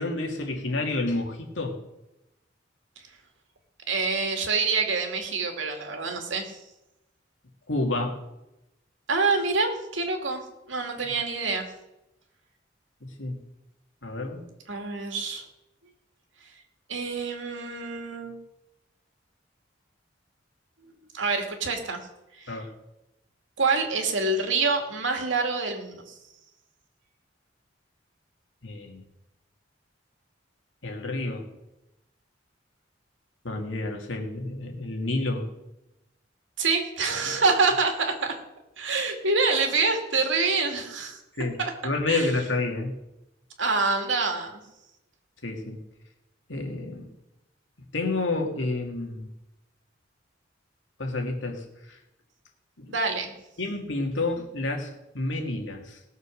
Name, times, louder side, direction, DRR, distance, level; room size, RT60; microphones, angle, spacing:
voice 1, 0.0-1.8 7.7-8.1 11.0-11.1 13.2-13.4 14.0-14.5 22.5-22.7 28.6-29.0 30.8-31.5 33.4-35.5 41.4-41.6 41.8-42.9 45.4-45.8 46.5-47.1 47.9-49.3 51.0-52.0 52.8-53.0 53.6-56.0, left 2 dB, 80° left, 2 dB, 2.3 m, -29 dB
voice 2, 3.9-6.6 9.1-10.4 10.7-11.7 14.7-15.4 16.9-18.4 21.1-22.0 22.4-22.6 23.6-26.1 36.6-38.4 38.8-41.2 41.6-41.7 42.1-42.3 43.6-44.6 52.9-53.3, right 4 dB, 80° right, 4 dB, 2.3 m, -26 dB
19.0 x 6.8 x 6.4 m, 0.94 s
head